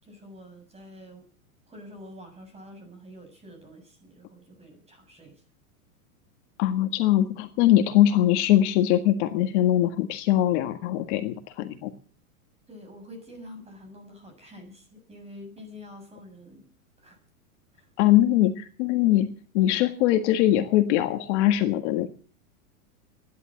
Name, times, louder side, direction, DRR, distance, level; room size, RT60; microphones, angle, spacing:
voice 1, 0.0-1.3 1.7-5.4 12.7-16.7 17.0-17.2 17.7-17.9, left 1 dB, 15° right, 5 dB, 7.1 m, -47 dB
voice 2, 6.6-11.9 18.0-22.1, left 13 dB, 50° left, 7 dB, 1.7 m, -22 dB
16.0 x 11.5 x 7.5 m, 0.43 s
hypercardioid pair, 135°, 44 cm